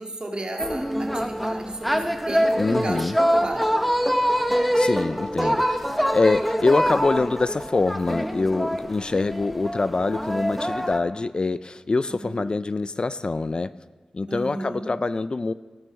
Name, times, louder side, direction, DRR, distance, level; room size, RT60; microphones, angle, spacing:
voice 1, 0.0-3.0 3.3-3.7 5.2-5.6 12.2-12.5 14.3-14.9, right 1 dB, 45° right, 1 dB, 2.1 m, -34 dB
sound 1, 0.6-11.0, equal, ahead, 0.9 m, -24 dB
voice 2, 2.6-3.1 4.7-13.7 14.1-15.5, left 3 dB, 45° left, 15 dB, 0.4 m, -25 dB
16.0 x 9.5 x 6.3 m, 1.3 s
wide cardioid pair, 100°, 2 cm